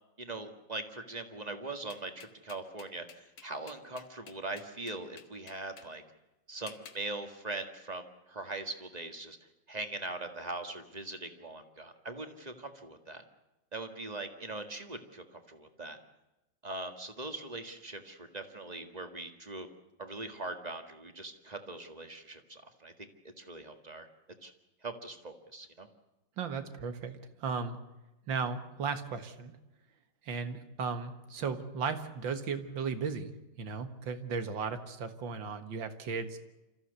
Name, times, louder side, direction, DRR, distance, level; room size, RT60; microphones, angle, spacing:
voice 1, 0.2-6.0 6.5-9.4 9.7-13.2 13.7-16.0 16.6-19.7 20.0-24.1 24.4-24.5 24.8-25.9, right 2 dB, 20° right, 7 dB, 1.8 m, -41 dB
sound 1, 1.9-5.9 6.7-7.0, left 7 dB, 55° left, 1.6 m, -52 dB
voice 2, 26.4-27.8 28.3-29.6 30.2-33.3 33.6-36.4, right 5 dB, 75° right, 9 dB, 2.3 m, -36 dB
27.0 x 14.5 x 8.2 m, 1.0 s
omnidirectional pair, 2.1 m